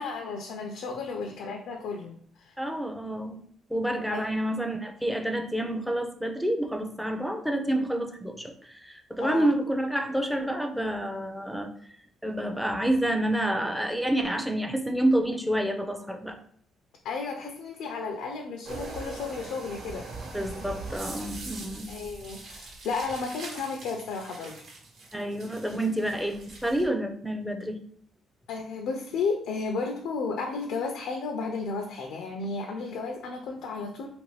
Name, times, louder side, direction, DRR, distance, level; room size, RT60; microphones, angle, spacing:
voice 1, 0.0-2.6 4.1-4.2 9.2-9.5 17.0-20.1 21.9-24.6 28.5-34.1, left 4 dB, 85° left, 3 dB, 0.4 m, -33 dB
voice 2, 2.6-3.4 3.7-11.7 12.2-16.4 20.3-21.9 25.1-27.8, right 1 dB, ahead, 5 dB, 0.4 m, -28 dB
sound 1, 18.6-26.9, right 3 dB, 65° right, 1.0 m, -41 dB
3.0 x 2.5 x 3.1 m, 0.62 s
cardioid pair, 145°, 0 cm